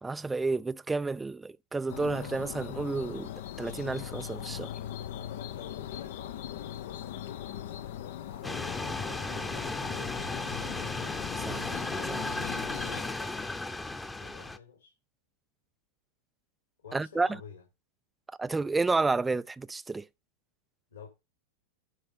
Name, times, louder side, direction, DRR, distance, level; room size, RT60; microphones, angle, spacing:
voice 1, 0.0-3.3 3.6-4.7 11.4-11.8 12.1-12.4 16.9-17.3 18.4-20.1, right 3 dB, 10° right, 0.5 m, -31 dB
sound 1, 1.9-13.0, left 11 dB, 55° left, 0.8 m, -40 dB
voice 2, 5.1-11.1 12.8-13.6 14.2-14.9 16.8-17.6 20.9-21.1, left 7 dB, 70° left, 4.8 m, -50 dB
sound 2, 8.4-14.6, left 2 dB, 10° left, 1.0 m, -35 dB
12.0 x 5.7 x 5.4 m
figure-of-eight pair, 90°, 0 cm